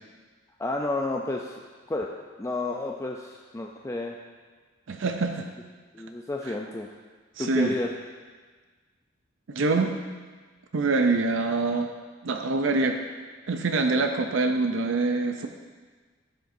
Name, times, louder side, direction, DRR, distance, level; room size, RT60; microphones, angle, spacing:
voice 1, 0.6-1.6 1.9-4.2 5.9-6.9 7.4-7.9, left 2 dB, 15° left, 0 dB, 0.4 m, -31 dB
voice 2, 4.9-5.5 6.5-6.6 7.4-7.7 9.5-10.0 10.7-11.9 12.2-13.0 13.5-15.5, right 3 dB, 70° right, 5 dB, 0.5 m, -25 dB
11.5 x 7.6 x 2.6 m, 1.4 s
head